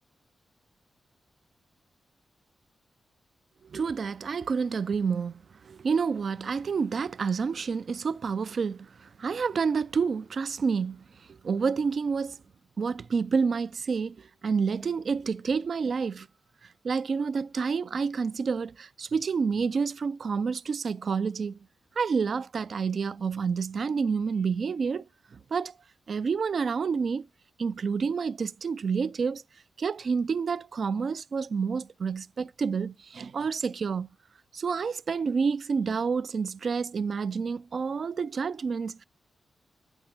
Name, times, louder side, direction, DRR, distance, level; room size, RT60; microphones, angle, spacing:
voice 1, 3.7-11.0 11.4-12.4 12.8-16.3 16.8-21.6 22.0-25.1 25.3-25.7 26.1-27.3 27.6-29.4 29.8-34.1 34.5-39.0, right 5 dB, 60° right, 0.3 m, -29 dB
8.9 x 3.1 x 5.9 m
cardioid pair, 65°, 0 cm